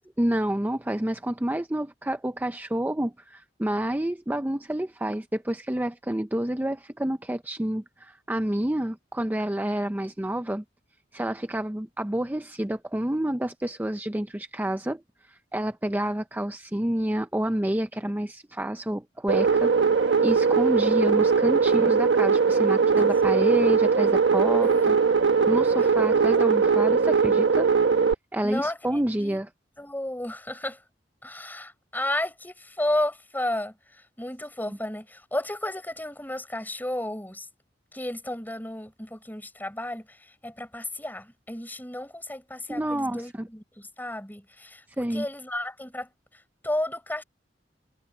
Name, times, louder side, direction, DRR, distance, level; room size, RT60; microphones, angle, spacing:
voice 1, 0.2-10.6 11.1-25.0 25.5-27.7 28.3-29.5 34.7-34.8 42.7-43.5 45.0-45.3, right 1 dB, 10° right, 0.6 m, -29 dB
sound 1, 19.3-28.1, right 5 dB, 90° right, 1.2 m, -20 dB
voice 2, 21.7-23.0 24.6-25.0 26.2-26.5 28.4-29.4 29.8-30.8 31.2-37.5 37.9-46.1 46.6-47.2, left 1 dB, 10° left, 5.2 m, -33 dB
head